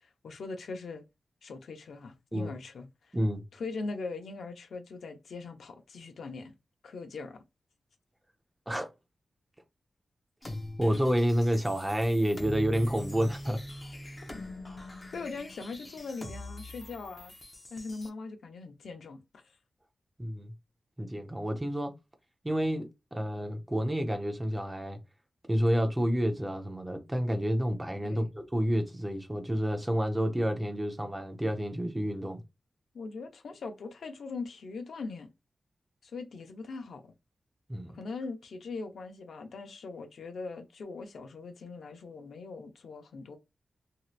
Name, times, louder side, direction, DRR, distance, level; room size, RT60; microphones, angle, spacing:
voice 1, 0.0-1.0 1.4-3.2 3.5-6.5 6.8-7.4 15.1-17.3 17.7-19.4 28.0-28.3 32.9-35.3 36.0-37.1 37.9-43.4, left 4 dB, 85° left, 0.6 m, -41 dB
sound 1, 10.4-18.1, left 1 dB, 25° left, 0.7 m, -43 dB
voice 2, 10.8-13.6 20.2-20.5 21.0-21.9 22.4-25.0 25.5-32.4 37.7-38.0, equal, 10° right, 0.5 m, -29 dB
3.1 x 2.8 x 2.4 m
wide cardioid pair, 160°, 0 cm